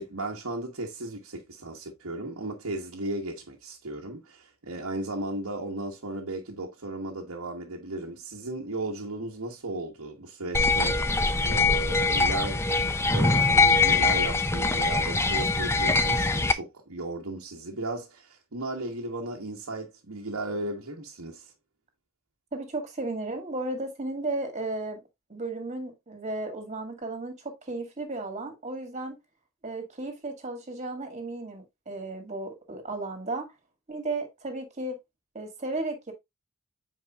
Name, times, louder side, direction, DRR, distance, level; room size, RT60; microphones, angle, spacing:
voice 1, 0.0-12.6 13.1-21.5, right 2 dB, 80° right, 1.3 m, -35 dB
sound 1, 10.5-16.5, left 3 dB, 10° left, 0.5 m, -23 dB
voice 2, 22.5-25.0 25.3-29.2 29.6-33.5 33.9-35.0 35.3-36.1, right 2 dB, 30° right, 2.1 m, -34 dB
8.2 x 4.7 x 2.4 m
head